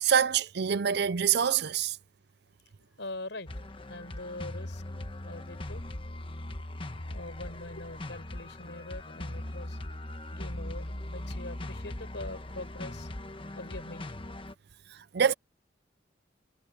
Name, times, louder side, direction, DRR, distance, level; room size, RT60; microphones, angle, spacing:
voice 1, 0.0-2.0 15.1-15.3, right 7 dB, 65° right, 0.5 m, -25 dB
voice 2, 3.0-3.5 3.9-4.8 5.2-5.8 7.1-9.8 10.3-13.1 13.6-14.0, left 2 dB, 75° left, 6.1 m, -43 dB
sound 1, 3.5-14.5, left 1 dB, 30° left, 1.1 m, -40 dB
head